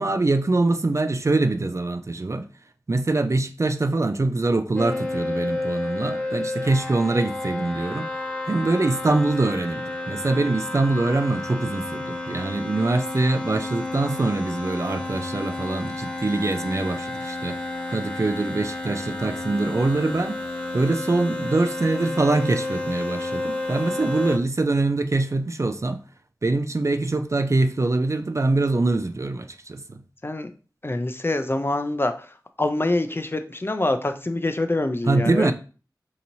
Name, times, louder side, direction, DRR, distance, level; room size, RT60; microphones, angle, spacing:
voice 1, 0.0-2.5 2.9-8.1 8.5-17.6 17.9-20.4 20.7-26.0 26.4-30.0 35.1-35.5, right 2 dB, 40° right, 0.4 m, -24 dB
sound 1, 4.8-24.4, left 2 dB, 15° left, 1.1 m, -31 dB
voice 2, 30.2-30.5 30.8-32.3 32.6-35.5, left 2 dB, 30° left, 0.4 m, -25 dB
4.0 x 2.9 x 2.7 m
wide cardioid pair, 45°, 7 cm